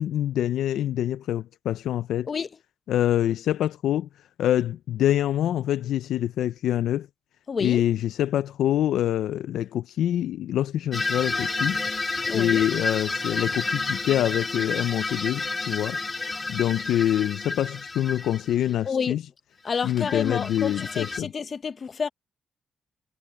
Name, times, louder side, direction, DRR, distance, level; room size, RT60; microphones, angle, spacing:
voice 1, 0.0-2.3 2.9-4.1 4.4-7.1 7.6-11.8 12.3-16.0 16.5-19.2 19.8-21.3, left 11 dB, 85° left, 0.4 m, -25 dB
voice 2, 7.5-7.8 12.3-12.6 18.8-19.2 19.6-22.1, left 6 dB, 45° left, 1.0 m, -29 dB
sound 1, 10.9-18.7 19.8-21.2, left 3 dB, 25° left, 2.8 m, -30 dB
cardioid pair, 100°, 0 cm